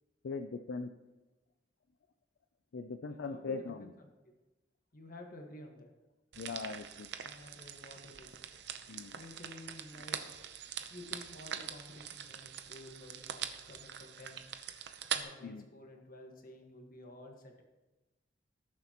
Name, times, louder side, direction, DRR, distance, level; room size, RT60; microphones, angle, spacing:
voice 1, 0.2-0.9 2.7-3.9 6.4-7.1 8.9-9.2 15.4-15.7, left 4 dB, 70° left, 8 dB, 0.4 m, -40 dB
voice 2, 3.1-3.9 4.9-5.9 7.2-8.4 9.1-10.4 10.9-14.4 15.1-17.6, left 1 dB, 50° left, 3 dB, 1.5 m, -52 dB
sound 1, 6.3-15.2, right 8 dB, 65° right, 0.7 m, -43 dB
18.5 x 7.3 x 3.0 m, 1.1 s
head